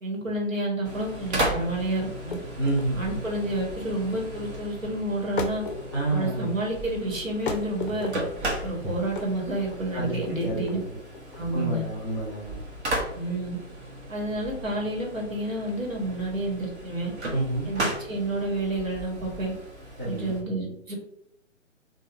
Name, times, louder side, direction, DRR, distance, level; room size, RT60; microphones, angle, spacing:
voice 1, 0.0-2.4 2.9-5.6 6.1-8.1 8.6-10.8 11.4-11.8 13.1-13.6 14.1-17.1 17.6-19.5 20.0-21.0, right 1 dB, 85° right, -1 dB, 1.1 m, -29 dB
sound 1, 0.8-20.4, right 1 dB, 55° right, 0.9 m, -36 dB
sound 2, 2.3-15.1, left 3 dB, 45° left, 0.4 m, -38 dB
voice 2, 2.6-3.2 5.9-6.5 9.9-10.1 10.4-10.6 11.5-12.6 17.3-17.6 20.0-20.3, right 2 dB, 20° right, -7 dB, 0.4 m, -28 dB
3.3 x 2.2 x 2.5 m, 0.75 s
figure-of-eight pair, 135°, 39 cm